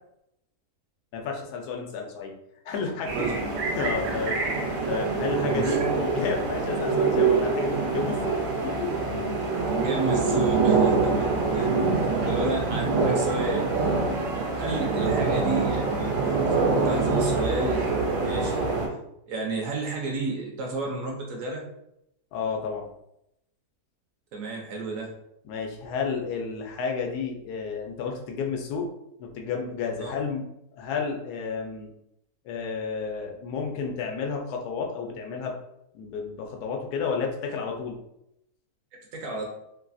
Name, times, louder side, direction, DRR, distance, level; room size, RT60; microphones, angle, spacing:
voice 1, 1.1-2.3 2.6-3.2 3.7-8.4 8.6-8.9 11.8-12.1 22.3-22.9 25.4-28.9 29.2-30.5 30.7-31.9 32.4-35.5 35.9-38.0, left 5 dB, 85° left, 2 dB, 1.1 m, -31 dB
sound 1, 3.1-18.9, right 4 dB, 90° right, 1.2 m, -25 dB
voice 2, 5.4-6.0 9.7-11.1 11.5-11.7 12.3-13.9 14.5-16.1 16.7-17.9 18.2-18.7 19.3-21.6 24.3-25.1 30.0-30.1 39.1-39.5, right 3 dB, 65° right, 0 dB, 0.9 m, -31 dB
3.2 x 2.3 x 2.5 m, 0.79 s
omnidirectional pair, 1.6 m